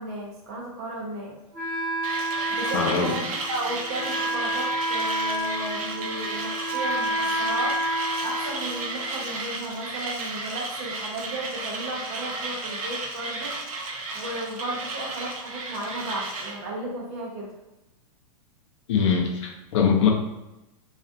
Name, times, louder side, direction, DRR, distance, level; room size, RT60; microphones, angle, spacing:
voice 1, 0.0-1.3 2.6-3.2 3.5-7.8 8.2-13.5 14.1-17.5, right 1 dB, 25° right, -2 dB, 0.4 m, -34 dB
Wind instrument woodwind instrument, 1.5-9.3, right 1 dB, 15° left, 0.7 m, -30 dB
Mechanisms, 2.0-16.6, right 3 dB, 65° right, 0.6 m, -33 dB
voice 2, 2.7-3.1 18.9-20.1, left 6 dB, 50° left, 2 dB, 0.5 m, -22 dB
2.4 x 2.2 x 2.5 m, 0.95 s
supercardioid pair, 175°, 19 cm